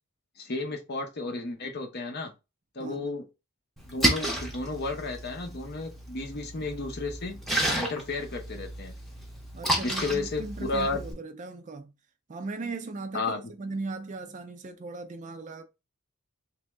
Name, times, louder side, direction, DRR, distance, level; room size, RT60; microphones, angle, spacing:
voice 1, 0.4-2.3 2.7-3.2 3.9-7.4 7.7-8.9 9.8-11.0 13.1-13.4, left 3 dB, 45° left, 0.7 m, -33 dB
Splash splatter, 3.8-11.1, right 1 dB, ahead, 0.7 m, -32 dB
voice 2, 9.5-11.9 12.3-15.6, right 3 dB, 35° right, 0.4 m, -38 dB
3.0 x 2.7 x 3.3 m
head